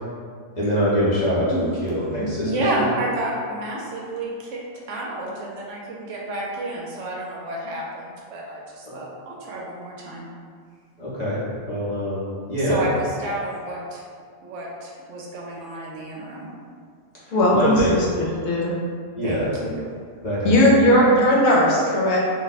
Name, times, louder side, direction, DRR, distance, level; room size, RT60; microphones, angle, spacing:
voice 1, 0.6-2.8 8.8-9.0 11.0-11.4 11.7-12.8 17.3-17.9 19.2-19.5 20.2-20.6, equal, 40° left, -9 dB, 0.7 m, -24 dB
voice 2, 2.5-4.6 4.9-10.3 12.6-14.0 14.4-16.5 19.2-19.9, right 1 dB, 70° right, -3 dB, 0.9 m, -30 dB
voice 3, 17.3-18.7 20.4-22.2, equal, 70° left, -4 dB, 1.0 m, -18 dB
2.5 x 2.1 x 4.0 m, 2.1 s
omnidirectional pair, 1.4 m